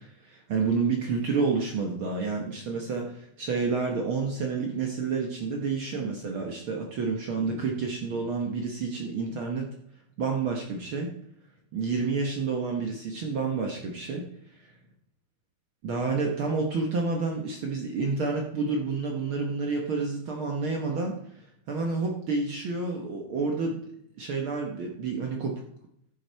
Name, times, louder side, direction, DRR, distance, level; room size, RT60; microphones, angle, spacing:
voice 1, 0.0-9.7 10.2-11.1 11.7-14.3 15.8-23.8 24.2-25.6, right 4 dB, 60° right, 1 dB, 1.4 m, -29 dB
11.0 x 7.3 x 4.5 m, 0.71 s
omnidirectional pair, 3.5 m